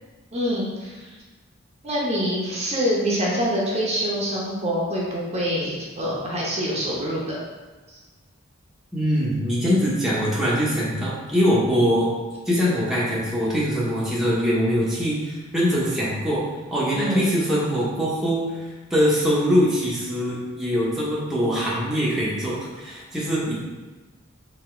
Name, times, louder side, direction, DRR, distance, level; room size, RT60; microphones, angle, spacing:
voice 1, 0.3-1.1 1.8-7.4 7.9-8.0 17.0-17.3, equal, 30° right, -5 dB, 0.8 m, -25 dB
voice 2, 8.9-12.1 12.5-16.4 16.7-23.5, equal, ahead, -8 dB, 0.8 m, -23 dB
3.9 x 2.9 x 4.3 m, 1.3 s
head